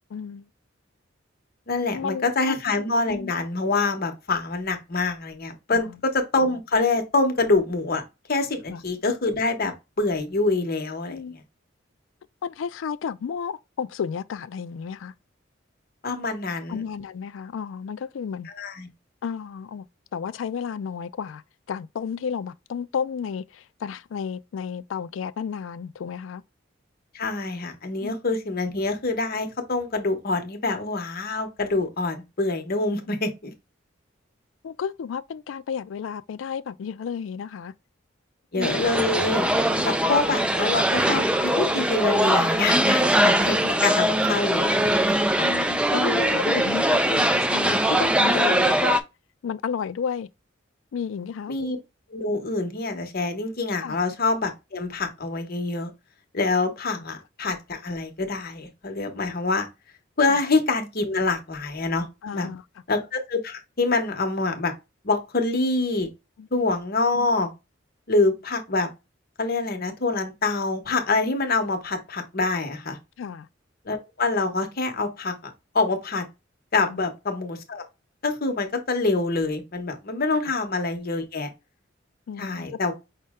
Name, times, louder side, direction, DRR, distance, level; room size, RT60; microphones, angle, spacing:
voice 1, 0.1-0.5 1.9-2.6 3.1-3.3 5.7-6.0 8.7-8.8 11.1-11.4 12.4-15.1 16.7-18.5 19.2-19.8 20.1-21.4 21.7-26.4 28.0-28.2 34.6-37.7 38.6-38.8 39.7-39.9 45.4-49.0 49.4-50.3 50.9-51.5 53.8-54.0 60.3-60.4 62.2-62.6 66.4-66.5 73.2-73.5 76.9-77.0 82.3-82.8, left 6 dB, 80° left, 0.3 m, -32 dB
voice 2, 1.7-8.0 8.3-9.7 10.0-11.4 16.0-16.8 18.6-18.9 27.1-33.5 38.5-39.5 39.8-45.1 51.5-51.8 52.1-55.9 56.3-59.7 60.2-62.1 62.3-62.5 62.9-64.7 65.0-66.1 66.5-67.5 68.1-68.9 69.4-73.0 73.8-76.2 76.7-77.8 78.2-81.5 82.4-82.9, left 3 dB, 50° left, 1.0 m, -25 dB
sound 1, 38.6-49.0, right 1 dB, 5° right, 0.3 m, -22 dB
5.4 x 2.1 x 3.5 m
head